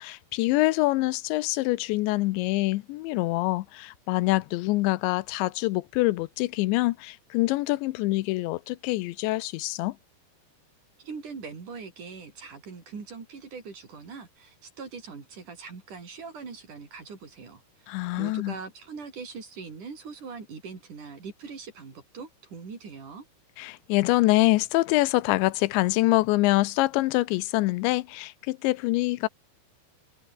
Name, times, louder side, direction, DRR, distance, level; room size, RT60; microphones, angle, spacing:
voice 1, 0.0-10.0 17.9-18.6 23.6-29.3, left 20 dB, 85° left, 3.0 m, -25 dB
voice 2, 11.0-23.3, right 5 dB, 45° right, 5.7 m, -42 dB
omnidirectional pair, 5.1 m